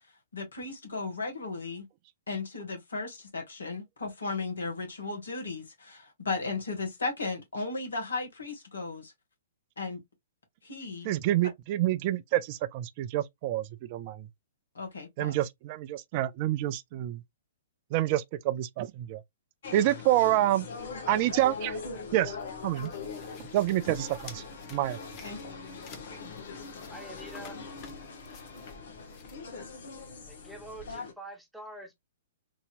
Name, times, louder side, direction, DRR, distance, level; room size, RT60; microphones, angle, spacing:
voice 1, 0.3-1.9 2.3-9.1 9.8-10.0 10.6-11.1 14.7-15.4 25.2-25.4, left 3 dB, 75° left, 1.7 m, -35 dB
voice 2, 11.0-13.6 13.9-14.2 15.2-17.2 17.9-19.2 19.7-20.7 21.1-21.8 22.1-22.4 22.6-22.9 23.4-24.4 24.7-25.0, right 14 dB, 40° right, 0.3 m, -27 dB
sound 1, 19.6-31.1, left 4 dB, 60° left, 1.2 m, -42 dB
sound 2, 20.8-30.9, left 4 dB, 35° left, 1.0 m, -52 dB
voice 3, 26.9-27.6 30.3-32.0, right 1 dB, 5° right, 1.0 m, -45 dB
3.8 x 2.8 x 2.4 m
figure-of-eight pair, 115°, 0 cm